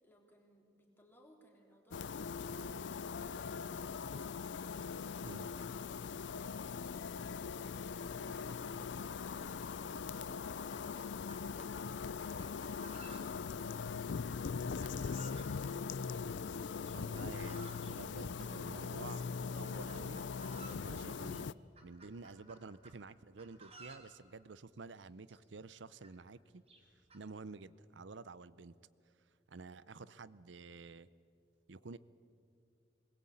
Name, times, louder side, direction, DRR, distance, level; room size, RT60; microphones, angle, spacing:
voice 1, 0.0-4.4 6.4-7.2, equal, 10° left, 0 dB, 3.6 m, -64 dB
sound 1, 1.9-21.5, left 5 dB, 75° left, 0.4 m, -41 dB
Chicken rooster, 10.4-11.7 12.4-13.5 14.8-15.5 16.8-17.9 18.8-19.2 19.6-20.9 21.3-21.4 21.8-23.0 23.4-24.1 25.0-25.1 25.3-25.4 26.0-26.1 26.7-27.2, right 3 dB, 35° right, 3.6 m, -56 dB
voice 2, 16.8-20.2 20.5-26.6 27.1-28.8 29.5-31.1 31.7-32.0, right 4 dB, 85° right, 17 dB, 0.7 m, -50 dB
21.5 x 20.0 x 8.7 m, 2.5 s
head